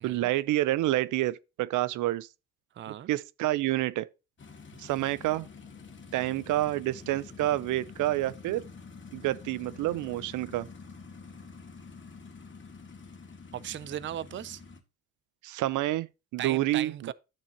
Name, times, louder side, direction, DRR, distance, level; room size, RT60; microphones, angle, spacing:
voice 1, 0.0-2.3 3.1-4.1 4.8-5.5 6.1-8.6 9.1-10.7 15.4-17.1, right 15 dB, 85° right, 0.6 m, -28 dB
voice 2, 2.8-3.1 13.5-14.6 16.4-17.1, right 11 dB, 40° right, 0.5 m, -37 dB
sound 1, 4.4-14.8, left 4 dB, 40° left, 1.9 m, -47 dB
11.5 x 6.9 x 2.8 m
cardioid pair, 90°, 30 cm